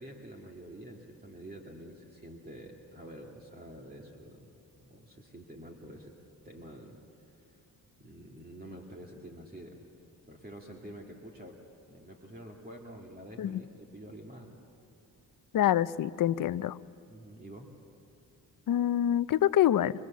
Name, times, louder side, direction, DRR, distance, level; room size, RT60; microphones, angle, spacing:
voice 1, 0.0-4.5 4.7-6.1 6.4-7.0 7.4-7.6 8.0-9.8 10.3-11.6 11.9-14.6 17.1-17.7, right 1 dB, 25° right, 0 dB, 2.2 m, -48 dB
voice 2, 15.5-16.8 18.7-19.9, left 11 dB, 60° left, 14 dB, 0.6 m, -26 dB
25.0 x 21.5 x 7.3 m, 2.6 s
cardioid pair, 75°, 38 cm